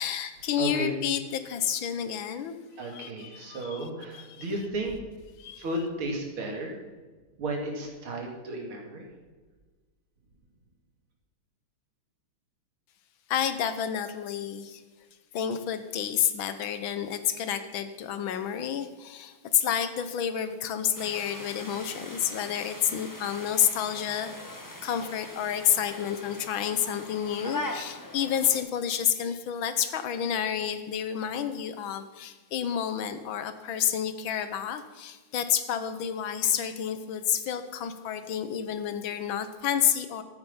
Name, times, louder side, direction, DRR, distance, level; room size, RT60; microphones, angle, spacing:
voice 1, 0.0-2.6 2.9-3.8 5.4-5.6 13.3-14.8 15.3-24.6 24.8-40.2, left 9 dB, 75° left, 11 dB, 1.7 m, -29 dB
voice 2, 0.6-0.9 2.8-5.1 5.5-6.8 7.4-9.1, right 1 dB, 85° right, 1 dB, 3.1 m, -33 dB
sound 1, 21.0-28.6, left 1 dB, 15° left, 0.9 m, -41 dB
13.5 x 9.1 x 5.5 m, 1.3 s
omnidirectional pair, 2.2 m